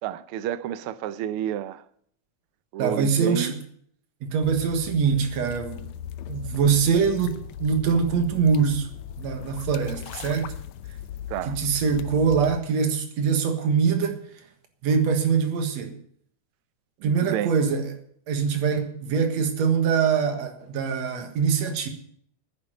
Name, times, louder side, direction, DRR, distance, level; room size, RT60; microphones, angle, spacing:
voice 1, 0.0-1.8 2.7-3.6 11.3-11.5 17.0-17.5, right 11 dB, 85° right, 1.2 m, -30 dB
voice 2, 2.8-3.5 4.2-5.9 6.3-8.9 9.2-10.5 11.5-14.2 14.8-16.0 17.0-17.9 18.3-21.9, right 6 dB, 65° right, 2.7 m, -23 dB
sound 1, 4.4-12.6, left 10 dB, 75° left, 2.0 m, -39 dB
10.0 x 9.7 x 9.2 m
omnidirectional pair, 3.4 m